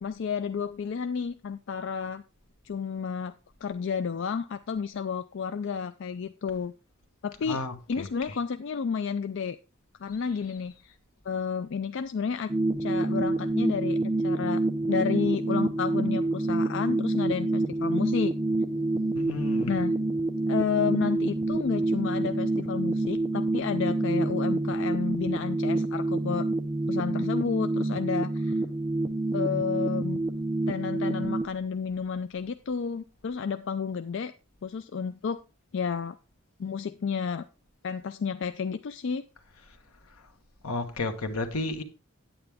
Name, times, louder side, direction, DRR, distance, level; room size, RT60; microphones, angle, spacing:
voice 1, 0.0-2.2 2.6-3.4 3.6-6.7 7.2-7.6 7.9-9.6 10.0-10.9 11.3-12.5 12.8-14.6 14.9-18.3 19.7-20.0 20.5-26.5 26.9-28.6 29.3-30.2 30.7-34.3 34.6-35.4 35.7-36.2 36.6-37.4 37.8-39.2, left 6 dB, 55° left, 0.4 m, -31 dB
voice 2, 7.4-8.4 19.1-19.8 40.6-41.8, left 2 dB, 80° left, 1.3 m, -33 dB
sound 1, 12.5-31.5, right 2 dB, 20° right, 0.7 m, -27 dB
8.9 x 8.9 x 3.5 m
head